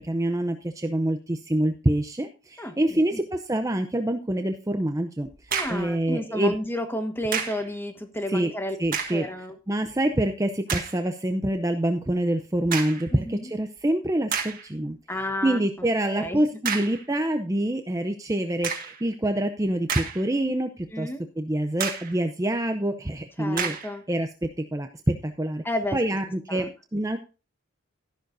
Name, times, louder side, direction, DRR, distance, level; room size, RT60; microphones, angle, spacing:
voice 1, 0.0-6.5 8.3-8.5 8.8-9.3 9.7-15.0 15.4-20.7 21.0-21.1 21.4-23.7 24.1-25.6 25.9-27.2, right 1 dB, 15° right, 7 dB, 0.6 m, -26 dB
voice 2, 2.6-3.2 5.5-8.8 9.1-9.6 13.1-13.5 15.1-15.6 16.0-16.4 20.9-21.3 23.4-24.0 25.6-26.0 26.5-26.7, left 1 dB, 10° left, 7 dB, 1.3 m, -32 dB
sound 1, 5.2-5.9 7.3-7.7 8.8-9.3 9.9-10.0 10.7-11.0 12.7-13.1 13.8-13.9 14.3-14.7 16.6-17.0 18.6-19.0 19.6-20.5 20.8-20.9 21.8-22.2 23.6-24.0, right 6 dB, 40° right, 1.9 m, -30 dB
13.0 x 11.5 x 2.6 m, 0.33 s
head